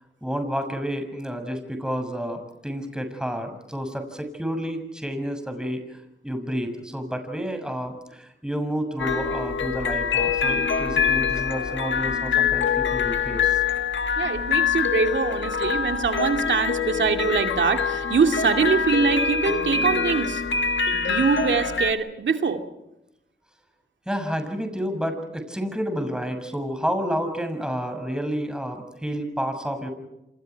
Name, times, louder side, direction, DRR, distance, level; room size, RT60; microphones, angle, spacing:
voice 1, 0.2-6.0 6.2-13.6 24.0-29.9, equal, 5° right, 6 dB, 6.7 m, -30 dB
sound 1, 9.0-21.9, left 6 dB, 80° left, 1.6 m, -25 dB
voice 2, 14.2-20.4 21.1-22.6, right 5 dB, 80° right, 5 dB, 2.6 m, -23 dB
28.5 x 27.0 x 4.7 m, 0.91 s
cardioid pair, 60°, 19 cm